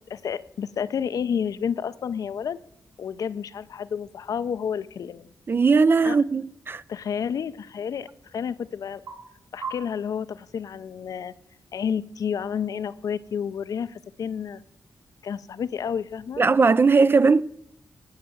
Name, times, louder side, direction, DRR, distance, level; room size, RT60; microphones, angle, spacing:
voice 1, 0.1-2.6 3.0-5.3 6.0-6.2 6.9-9.0 9.5-11.3 11.7-14.6 15.2-16.4, left 7 dB, 70° left, 0.6 m, -30 dB
sound 1, 1.2-16.7, right 4 dB, 80° right, 5.1 m, -49 dB
voice 2, 5.5-6.8 16.4-17.4, right 4 dB, 35° right, 0.4 m, -19 dB
17.0 x 5.7 x 7.7 m
cardioid pair, 85°, 6 cm